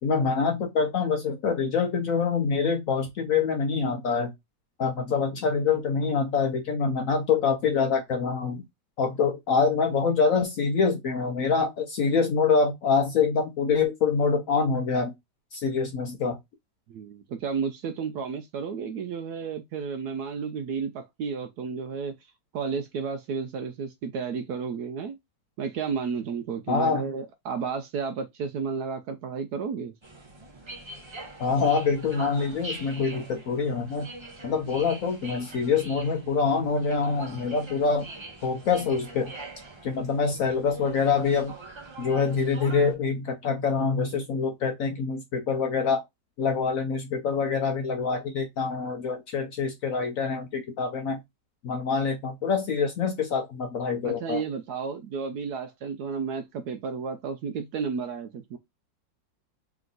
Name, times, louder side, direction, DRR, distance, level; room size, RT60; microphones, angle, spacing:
voice 1, 0.0-4.3 4.8-8.6 9.0-15.1 15.5-16.4 26.7-27.0 31.4-34.1 34.4-38.0 38.4-39.3 39.8-41.5 42.0-46.0 46.4-51.2 51.6-54.4, left 5 dB, 65° left, 0.9 m, -25 dB
voice 2, 16.9-22.1 22.5-25.2 25.6-29.9 54.0-58.6, right 6 dB, 70° right, 0.9 m, -32 dB
sound 1, 30.0-43.0, right 2 dB, 35° right, 0.4 m, -43 dB
3.4 x 3.0 x 3.8 m
omnidirectional pair, 2.0 m